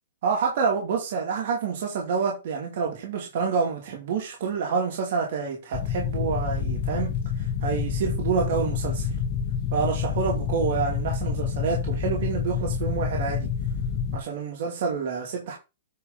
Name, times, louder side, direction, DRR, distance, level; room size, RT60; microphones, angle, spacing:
voice 1, 0.2-9.2 9.7-13.5 14.1-15.6, right 5 dB, 55° right, 2.5 m, -28 dB
sound 1, 5.7-14.2, left 7 dB, 35° left, 1.4 m, -28 dB
9.2 x 3.8 x 5.4 m
hypercardioid pair, 155°, 0 cm